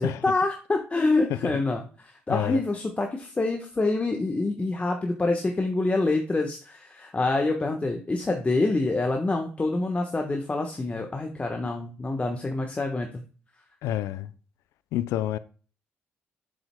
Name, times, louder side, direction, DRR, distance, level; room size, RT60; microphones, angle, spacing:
voice 1, 0.0-13.2, left 2 dB, 25° left, 1.2 m, -26 dB
voice 2, 2.3-2.6 13.8-14.3 14.9-15.4, left 13 dB, 80° left, 0.5 m, -28 dB
7.6 x 7.1 x 2.2 m
supercardioid pair, 55°, 5 cm